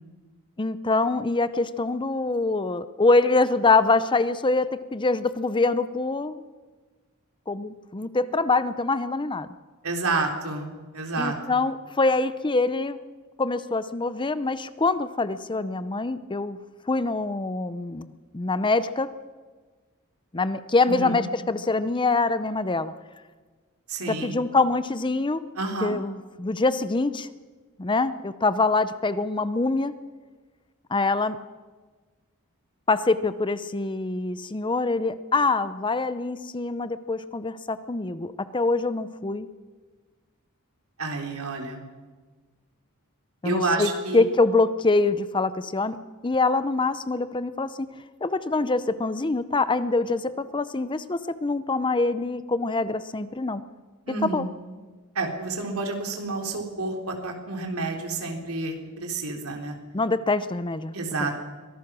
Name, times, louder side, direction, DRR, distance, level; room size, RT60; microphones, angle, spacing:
voice 1, 0.6-6.4 7.5-9.5 11.2-13.0 13.4-16.6 16.9-18.1 18.3-19.1 20.3-22.9 24.1-25.4 25.8-27.3 27.8-29.9 30.9-31.4 32.9-39.5 43.4-46.0 46.2-47.9 48.2-53.6 54.3-54.4 59.9-60.9 61.2-61.3, left 3 dB, 20° left, 14 dB, 0.6 m, -24 dB
voice 2, 9.8-10.7 10.9-11.6 20.9-21.2 23.9-24.4 25.6-26.0 41.0-41.8 43.4-44.2 54.1-54.5 55.2-59.8 60.9-61.3, right 3 dB, 75° right, 2 dB, 3.6 m, -29 dB
24.0 x 18.0 x 6.2 m, 1.4 s
head